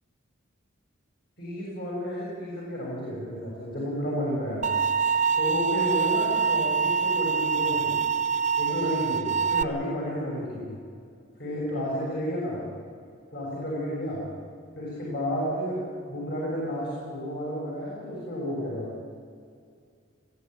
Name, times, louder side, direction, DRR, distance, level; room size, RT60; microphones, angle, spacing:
voice 1, 1.4-4.8 5.4-7.9 8.6-10.8 11.4-12.6 13.3-14.3 14.8-15.8 16.1-18.9, equal, 55° left, -5 dB, 7.0 m, -31 dB
sound 1, 4.6-9.6, right 6 dB, 35° right, 0.5 m, -25 dB
21.0 x 14.0 x 9.5 m, 2.2 s
head